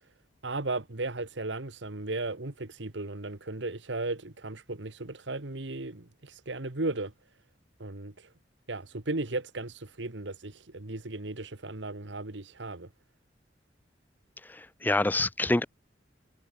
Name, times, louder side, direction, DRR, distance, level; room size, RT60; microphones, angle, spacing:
voice 1, 0.4-7.1 7.8-8.3 8.7-12.9, right 2 dB, 70° right, 1.6 m, -35 dB
voice 2, 14.5-15.7, left 2 dB, 10° left, 0.4 m, -26 dB
head